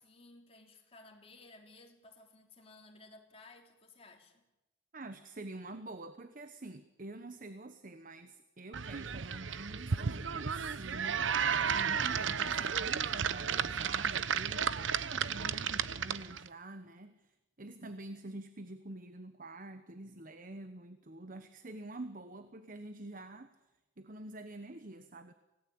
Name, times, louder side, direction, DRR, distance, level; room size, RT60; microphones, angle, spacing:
voice 1, 0.0-4.4, left 2 dB, 30° left, 2 dB, 3.5 m, -57 dB
voice 2, 4.9-23.5 24.0-25.3, right 2 dB, 45° right, 10 dB, 1.1 m, -47 dB
sound 1, 8.7-16.5, right 7 dB, 80° right, 0.8 m, -33 dB
26.0 x 18.5 x 8.8 m, 0.99 s
head